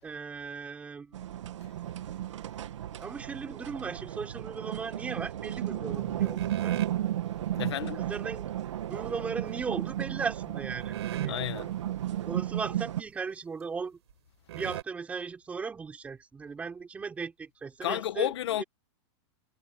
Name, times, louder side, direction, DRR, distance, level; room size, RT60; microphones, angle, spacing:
voice 1, 0.0-1.3 3.0-6.8 8.0-8.5 8.9-11.3 12.2-14.0 14.5-18.6, right 5 dB, 10° right, 5.8 m, -37 dB
sound 1, 1.1-13.0, right 12 dB, 90° right, 1.7 m, -34 dB
sound 2, 6.2-7.0 9.5-9.8 10.4-10.5 10.8-11.6 12.1-12.2 12.5-12.6 13.2-13.3 14.1-14.2 14.5-14.8, right 12 dB, 65° right, 6.6 m, -39 dB
voice 2, 7.6-8.0 11.3-11.7 17.8-18.6, left 12 dB, 65° left, 1.7 m, -31 dB
supercardioid pair, 175°, 15 cm